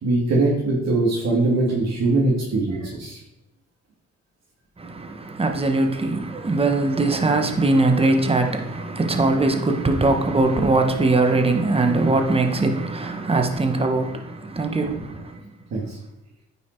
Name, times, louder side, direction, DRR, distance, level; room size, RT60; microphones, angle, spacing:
voice 1, 0.0-3.2 15.7-16.0, right 2 dB, 60° right, 2.3 m, -21 dB
voice 2, 4.8-15.4, right 2 dB, 20° right, 1.3 m, -21 dB
9.3 x 5.6 x 4.6 m
cardioid pair, 90°, 30 cm